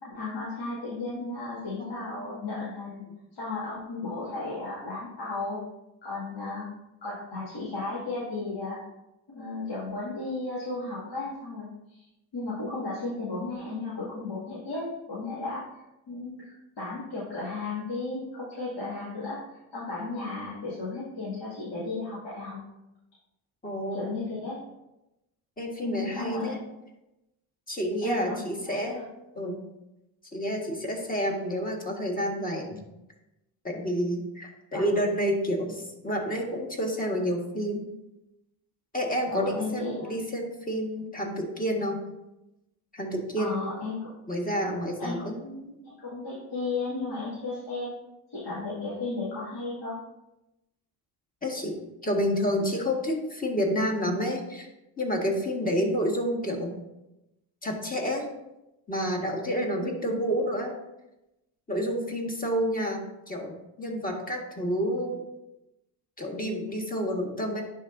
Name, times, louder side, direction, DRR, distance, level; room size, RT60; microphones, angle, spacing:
voice 1, 0.0-3.0 3.3-5.6 6.0-6.7 7.0-8.8 9.3-12.0 12.3-15.7 16.1-19.4 19.7-22.6 23.9-24.6 25.8-26.6 28.0-28.4 28.6-29.0 34.7-34.9 39.3-40.2 43.4-44.1 45.0-47.9 48.3-50.0 59.5-60.1, left 3 dB, 55° left, -9 dB, 2.3 m, -34 dB
voice 2, 1.8-2.3 23.6-24.3 25.6-26.6 27.7-29.0 29.4-29.6 30.3-32.8 33.6-37.8 38.9-42.0 42.9-43.7 44.3-45.4 51.4-54.7 55.0-56.7 57.6-58.3 58.9-60.7 61.7-65.2 66.2-67.6, equal, 15° left, 0 dB, 1.7 m, -29 dB
10.0 x 3.8 x 2.7 m, 0.92 s
supercardioid pair, 65°, 49 cm